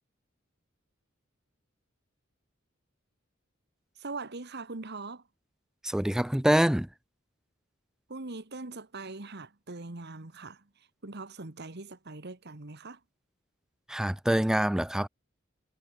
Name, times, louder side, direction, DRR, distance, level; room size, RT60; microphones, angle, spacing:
voice 1, 4.0-5.3 8.1-13.0, right 3 dB, 55° right, 1.6 m, -41 dB
voice 2, 5.8-6.9 13.9-15.1, equal, 5° right, 0.3 m, -25 dB
head